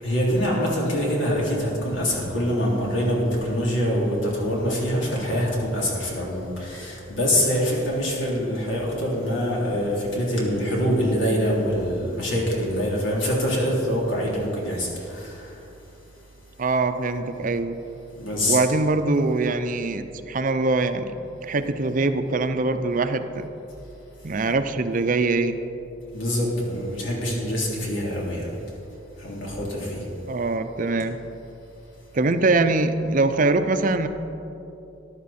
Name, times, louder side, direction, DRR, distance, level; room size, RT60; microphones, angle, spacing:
voice 1, 0.0-15.6 18.1-18.6 26.1-28.5 29.2-30.1, equal, 80° left, -3 dB, 3.2 m, -25 dB
voice 2, 16.6-17.8 18.4-21.1 21.4-23.4 24.2-25.6 30.2-31.2 32.1-34.1, right 3 dB, 45° right, 9 dB, 0.6 m, -23 dB
14.0 x 11.0 x 4.3 m, 2.9 s
head